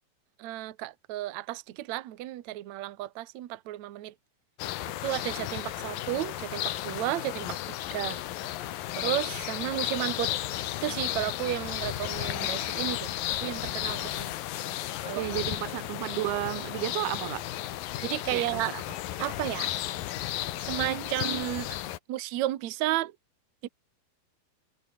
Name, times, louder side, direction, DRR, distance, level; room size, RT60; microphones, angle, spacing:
voice 1, 0.4-4.1 5.0-8.2 8.9-10.3 10.8-14.3 15.0-15.4 18.0-18.7 19.2-19.7 20.6-21.8 22.1-23.1 23.6-23.7, right 15 dB, 65° right, 1.9 m, -33 dB
sound 1, 4.6-22.0, left 14 dB, 70° left, 2.7 m, -34 dB
voice 2, 15.2-17.5 18.3-18.8, right 17 dB, 80° right, 2.6 m, -32 dB
omnidirectional pair, 4.6 m